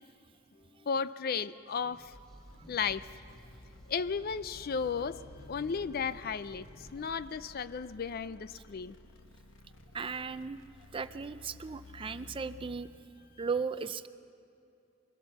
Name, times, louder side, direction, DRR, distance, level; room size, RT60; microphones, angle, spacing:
sound 1, 0.5-1.1 1.7-2.2 4.9-6.1 6.5-7.2 8.1-8.6 10.9-11.4 12.5-13.0, left 1 dB, 30° left, 2.7 m, -61 dB
voice 1, 0.9-2.1 2.7-3.1 3.9-5.2 5.5-8.9, left 6 dB, 50° left, 15 dB, 0.4 m, -34 dB
sound 2, 1.9-7.6, equal, ahead, 2.1 m, -54 dB
sound 3, 2.5-13.0, left 3 dB, 80° left, 1.1 m, -55 dB
voice 2, 9.9-10.6 10.9-12.9 13.4-14.1, right 5 dB, 25° right, 13 dB, 0.4 m, -36 dB
23.0 x 16.0 x 6.9 m, 2.5 s
head